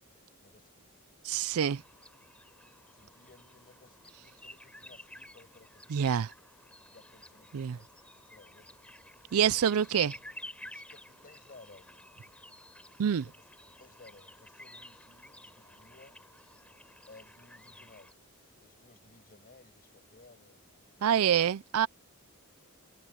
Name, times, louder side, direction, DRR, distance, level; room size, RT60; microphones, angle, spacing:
voice 1, 0.4-0.9 2.9-6.0 6.4-6.5 6.9-7.9 8.1-10.0 10.6-12.0 13.2-13.4 13.8-16.2 17.1-18.1 18.6-21.5, left 3 dB, 40° left, 6.1 m, -59 dB
voice 2, 1.2-1.8 5.9-6.3 7.5-7.8 9.3-10.2 13.0-13.2 21.0-21.9, right 8 dB, 75° right, 0.4 m, -26 dB
sound 1, 1.3-18.1, left 1 dB, 5° left, 6.4 m, -52 dB
head